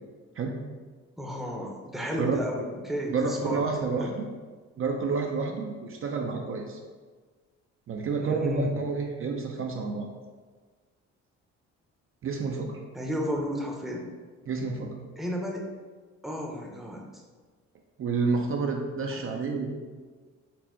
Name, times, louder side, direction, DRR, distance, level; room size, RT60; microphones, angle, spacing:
voice 1, 1.2-3.6 4.0-4.1 8.2-8.7 12.9-14.1 15.2-15.7 16.2-17.2 19.1-19.2, equal, ahead, -1 dB, 0.6 m, -33 dB
voice 2, 3.1-4.3 4.8-6.8 7.9-10.1 12.2-12.8 14.5-15.0 18.0-19.7, right 4 dB, 45° right, 2 dB, 0.5 m, -29 dB
4.3 x 2.1 x 4.2 m, 1.4 s
cardioid pair, 90°, 30 cm